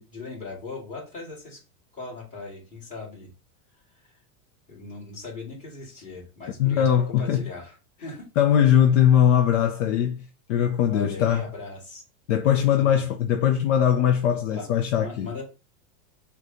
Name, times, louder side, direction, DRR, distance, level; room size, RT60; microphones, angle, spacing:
voice 1, 0.0-1.6 1.9-3.3 4.0-4.1 4.7-7.8 8.0-8.3 10.9-12.0 12.8-13.1 14.3-14.7 15.0-15.4, left 3 dB, 15° left, 2.0 m, -39 dB
voice 2, 6.6-7.4 8.4-11.5 12.3-15.3, left 9 dB, 55° left, 0.6 m, -21 dB
6.3 x 2.3 x 2.7 m
supercardioid pair, 165°, 46 cm